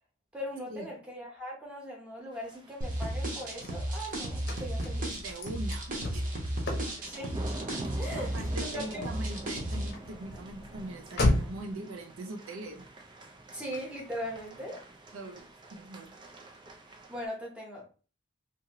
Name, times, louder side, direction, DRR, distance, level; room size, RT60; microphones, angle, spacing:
voice 1, 0.3-5.2 7.1-7.4 7.9-8.3 8.7-9.0 13.5-14.8 17.1-17.9, equal, 5° right, -3 dB, 0.9 m, -39 dB
sound 1, 2.3-17.2, right 2 dB, 20° right, 0.3 m, -47 dB
sound 2, 2.8-9.9, right 1 dB, 40° right, 0.8 m, -34 dB
Car / Slam, 3.1-11.7, left 1 dB, 50° left, 0.7 m, -35 dB
voice 2, 5.2-6.3 6.7-6.8 8.2-12.8 15.1-16.1, right 2 dB, 75° right, 2 dB, 0.6 m, -42 dB
2.6 x 2.6 x 2.9 m, 0.37 s
head